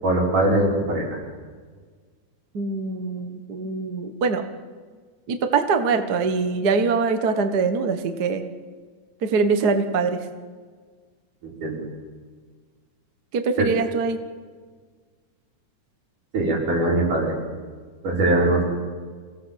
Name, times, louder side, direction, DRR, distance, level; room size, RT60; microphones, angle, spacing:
voice 1, 0.0-1.2 11.4-11.8 13.6-13.7 16.3-17.3 18.0-18.6, right 1 dB, 80° right, -2 dB, 6.8 m, -21 dB
voice 2, 2.5-4.4 5.3-8.4 9.2-10.3 13.3-14.2, right 4 dB, 40° right, 7 dB, 1.5 m, -23 dB
24.5 x 18.0 x 7.6 m, 1.5 s
omnidirectional pair, 3.5 m